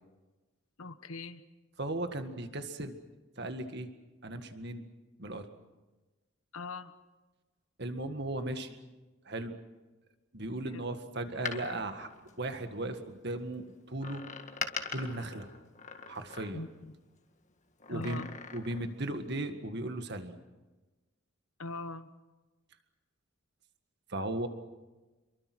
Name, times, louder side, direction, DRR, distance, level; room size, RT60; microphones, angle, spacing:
voice 1, 0.8-1.4 6.5-6.9 10.7-10.8 16.5-16.9 17.9-18.4 21.6-22.1, left 3 dB, 75° left, 11 dB, 1.2 m, -41 dB
voice 2, 1.8-3.0 3.4-3.9 4.2-4.9 5.2-5.5 7.8-8.8 9.3-9.5 10.3-12.1 12.4-14.2 14.9-15.5 16.1-16.6 17.9-18.3 18.5-20.4 24.1-24.5, right 1 dB, 50° right, 8 dB, 1.8 m, -36 dB
Door, 11.2-13.1 14.0-16.9 17.8-18.9 19.2-19.3, left 5 dB, 35° left, 1.8 m, -42 dB
28.0 x 23.5 x 6.2 m, 1.2 s
head